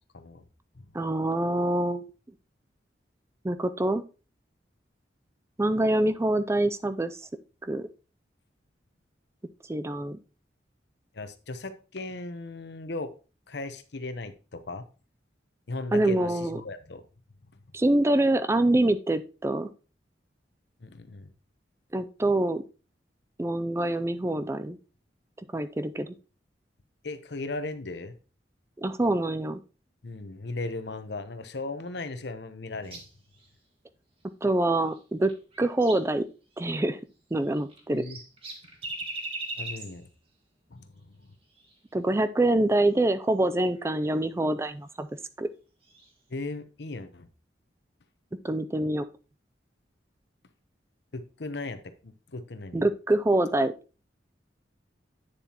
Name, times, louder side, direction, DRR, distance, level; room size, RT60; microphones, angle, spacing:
voice 1, 0.9-2.0 3.4-4.0 5.6-7.2 7.7-7.9 9.7-10.2 15.9-16.6 17.7-19.7 21.9-22.6 23.4-24.8 25.5-26.1 28.8-29.6 34.4-35.3 35.6-36.2 36.6-37.0 37.3-38.0 41.9-45.1 45.4-45.5 48.4-49.1 52.7-53.7, right 1 dB, 15° right, 11 dB, 0.4 m, -25 dB
voice 2, 11.1-13.1 13.5-14.8 15.7-17.0 20.8-21.3 27.0-28.1 30.0-33.0 37.9-38.2 39.6-40.1 40.7-41.3 46.3-47.3 51.1-52.8, left 2 dB, 65° left, 10 dB, 0.9 m, -37 dB
sound 1, 32.8-33.5 34.8-36.1 36.5-36.8 37.4-40.1 41.5-41.8 42.9-43.1 43.7-44.0 45.8-46.1, right 2 dB, 30° right, 1.8 m, -40 dB
9.3 x 7.0 x 2.9 m, 0.33 s
head